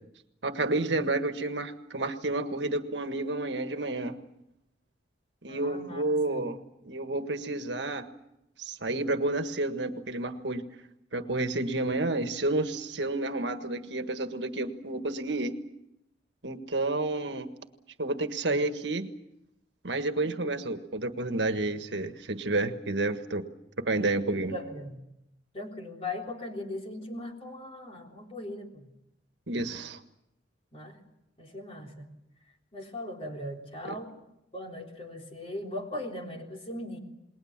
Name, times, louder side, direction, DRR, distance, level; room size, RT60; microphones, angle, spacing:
voice 1, 0.4-4.2 5.4-6.6 6.8-8.1 8.6-10.7 11.1-15.6 16.4-17.5 18.0-19.1 19.8-23.5 23.8-24.5 29.5-30.0 33.9-34.0, right 2 dB, 70° right, 8 dB, 1.6 m, -30 dB
voice 2, 5.5-6.0 6.3-6.5 18.4-18.6 20.2-20.3 24.0-25.0 25.5-28.9 30.7-31.0 31.4-32.1 32.7-34.1 34.5-37.0, left 1 dB, 35° left, 1 dB, 3.7 m, -39 dB
28.5 x 20.5 x 7.4 m, 0.86 s
head